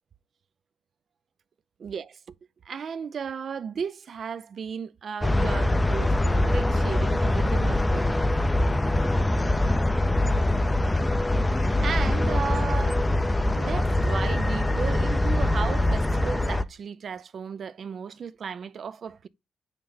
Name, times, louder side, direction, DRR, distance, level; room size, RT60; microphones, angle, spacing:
voice 1, 2.7-8.3 11.6-13.1 13.5-19.3, right 6 dB, 50° right, 0.4 m, -35 dB
sound 1, 5.2-16.6, left 1 dB, 10° left, 0.4 m, -23 dB
9.4 x 3.3 x 3.9 m
cardioid pair, 90°, 0 cm